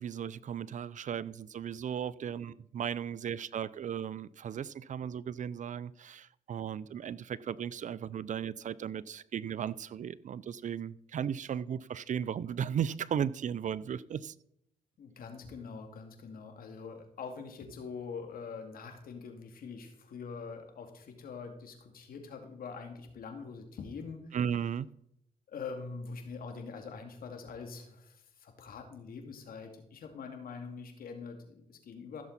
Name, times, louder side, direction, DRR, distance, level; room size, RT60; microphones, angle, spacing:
voice 1, 0.0-14.3 24.3-24.9, right 8 dB, 55° right, 20 dB, 0.5 m, -36 dB
voice 2, 15.0-24.4 25.5-32.2, left 5 dB, 70° left, 5 dB, 2.3 m, -44 dB
15.0 x 7.1 x 4.1 m, 0.76 s
supercardioid pair, 60°, 16 cm